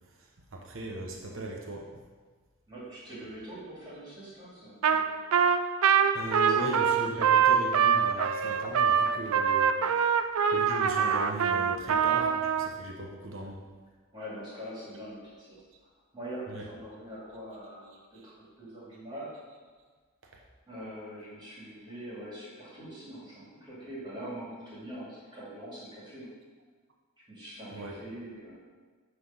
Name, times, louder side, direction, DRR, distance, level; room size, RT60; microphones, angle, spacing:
voice 1, 0.2-1.9 6.1-10.2 10.5-13.6 16.5-16.6 18.1-18.3 27.7-28.0, right 1 dB, 60° right, 0 dB, 1.0 m, -38 dB
voice 2, 2.7-5.2 6.5-6.6 6.9-7.0 14.1-15.6 16.1-19.3 20.7-26.3 27.3-28.6, right 1 dB, 20° right, -8 dB, 2.3 m, -43 dB
Trumpet, 4.8-5.0 5.3-12.7, right 7 dB, 75° right, 0.4 m, -24 dB
9.5 x 3.4 x 5.6 m, 1.5 s
head